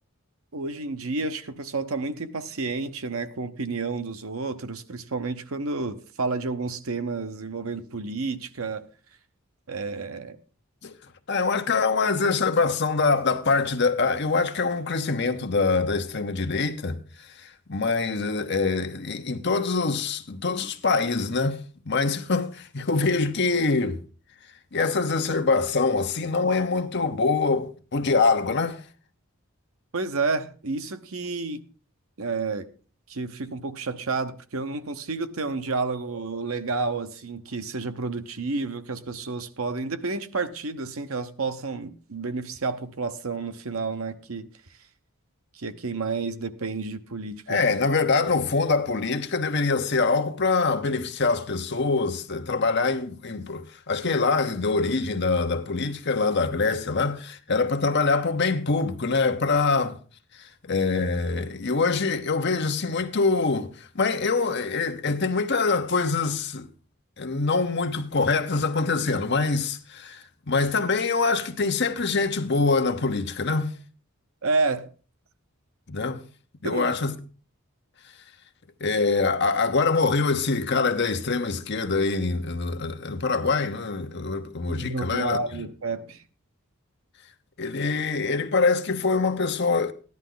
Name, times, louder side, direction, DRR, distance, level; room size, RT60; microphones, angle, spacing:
voice 1, 0.5-8.9 9.7-10.4 29.9-31.6 32.2-32.7 33.1-44.5 45.5-47.6 74.4-74.9 76.6-76.9 84.7-86.2, right 3 dB, 75° right, 0.9 m, -30 dB
voice 2, 11.3-21.6 21.8-24.0 24.7-28.8 47.5-60.0 60.3-66.7 67.2-73.7 75.9-76.2 76.6-77.1 78.8-85.7 87.6-89.9, left 4 dB, 50° left, 1.0 m, -24 dB
14.5 x 11.0 x 3.9 m
head